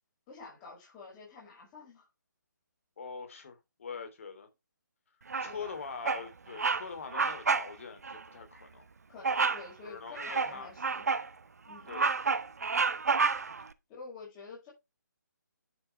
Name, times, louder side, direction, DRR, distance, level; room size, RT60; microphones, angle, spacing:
voice 1, 0.3-2.1 5.4-5.7 9.1-11.1 11.7-11.9 13.9-14.7, left 4 dB, 20° left, 5.8 m, -48 dB
voice 2, 3.0-4.5 5.4-8.8 9.8-10.7 11.8-12.1, left 5 dB, 45° left, 3.2 m, -43 dB
Bird vocalization bird call bird song, 5.3-5.7 6.0-6.3 6.6-6.8 7.1-7.7 8.0-8.2 9.2-9.7 10.2-11.3 11.7-13.6, right 5 dB, 55° right, 1.0 m, -29 dB
11.5 x 7.2 x 3.4 m
figure-of-eight pair, 145°, 10 cm